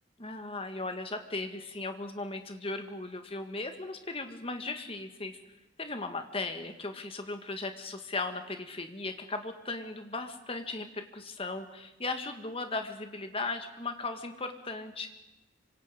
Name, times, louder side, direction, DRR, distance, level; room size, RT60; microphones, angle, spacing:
voice 1, 0.2-5.4 5.8-15.1, left 3 dB, 30° left, 7 dB, 1.9 m, -37 dB
26.5 x 25.0 x 5.2 m, 1.0 s
head